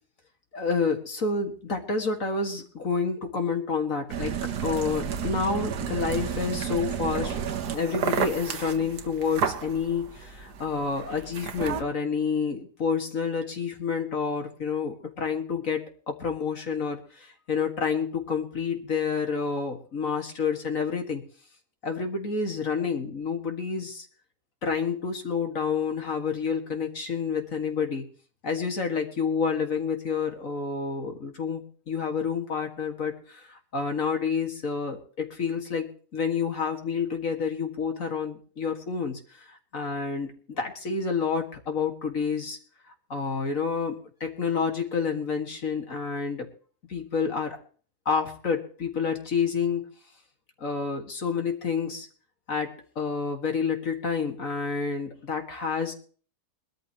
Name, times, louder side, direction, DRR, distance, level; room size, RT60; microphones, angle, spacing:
voice 1, 0.5-4.3 4.6-7.4 7.7-21.2 21.8-24.1 24.6-28.1 28.4-42.6 43.1-46.5 46.9-47.6 48.1-49.8 50.6-52.1 52.5-55.9, left 5 dB, 55° left, 4 dB, 2.4 m, -29 dB
sound 1, 4.1-11.8, right 7 dB, 80° right, 1.7 m, -31 dB
22.0 x 13.0 x 3.1 m, 0.43 s
omnidirectional pair, 1.7 m